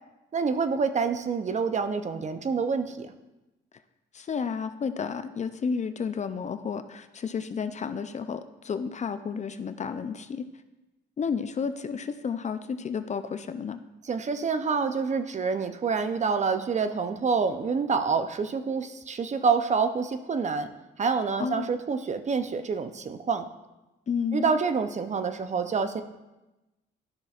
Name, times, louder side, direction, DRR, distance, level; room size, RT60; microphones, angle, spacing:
voice 1, 0.3-3.1 14.0-20.7 21.0-23.5 24.3-26.0, right 5 dB, 35° right, 9 dB, 0.6 m, -27 dB
voice 2, 4.1-10.4 11.2-13.8 21.4-21.7 24.1-24.6, left 6 dB, 35° left, 10 dB, 0.5 m, -31 dB
12.5 x 6.1 x 2.4 m, 1.0 s
cardioid pair, 90°, 20 cm